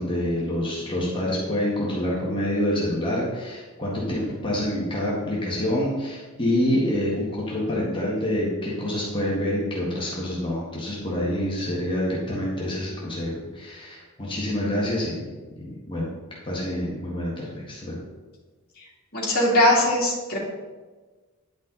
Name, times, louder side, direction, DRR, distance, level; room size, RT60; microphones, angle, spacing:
voice 1, 0.0-15.2 15.6-16.1 16.4-18.0, left 1 dB, 25° left, -5 dB, 1.6 m, -27 dB
voice 2, 19.1-20.4, left 1 dB, 45° left, -6 dB, 2.5 m, -20 dB
10.5 x 5.4 x 4.0 m, 1.3 s
head